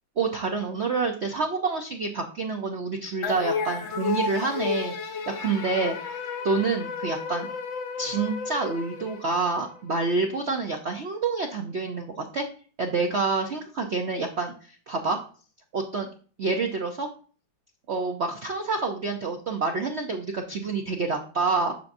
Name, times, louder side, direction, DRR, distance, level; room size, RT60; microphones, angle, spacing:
voice 1, 0.2-6.2 6.4-7.5 8.0-12.5 12.8-15.2 15.7-16.1 16.4-17.1 17.9-21.7, right 4 dB, 75° right, 3 dB, 0.6 m, -28 dB
sound 1, 3.2-9.8, left 5 dB, 80° left, 1.6 m, -32 dB
7.3 x 7.1 x 2.6 m, 0.41 s
omnidirectional pair, 2.1 m